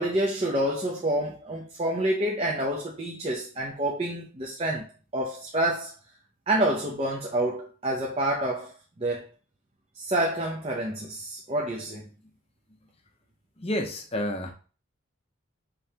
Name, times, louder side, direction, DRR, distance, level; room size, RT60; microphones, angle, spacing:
voice 1, 0.0-4.8 5.1-5.9 6.5-8.7 9.0-9.2 10.0-12.0, right 1 dB, 30° right, 0.6 m, -28 dB
voice 2, 13.6-14.5, left 1 dB, 30° left, 0.7 m, -30 dB
5.3 x 3.2 x 2.9 m
head